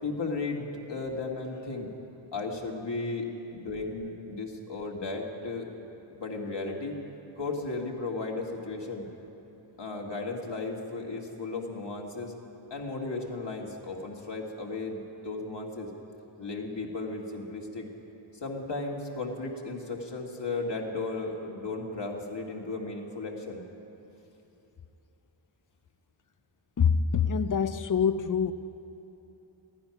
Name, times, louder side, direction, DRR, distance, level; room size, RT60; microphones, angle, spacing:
voice 1, 0.0-3.3 3.5-5.7 6.2-6.9 7.4-9.0 9.8-12.3 12.7-15.9 16.4-17.9 18.4-23.6, left 3 dB, 55° left, -1 dB, 2.1 m, -35 dB
voice 2, 26.8-28.5, left 6 dB, 40° left, 12 dB, 0.6 m, -25 dB
15.0 x 12.0 x 5.9 m, 3.0 s
cardioid pair, 40°, 49 cm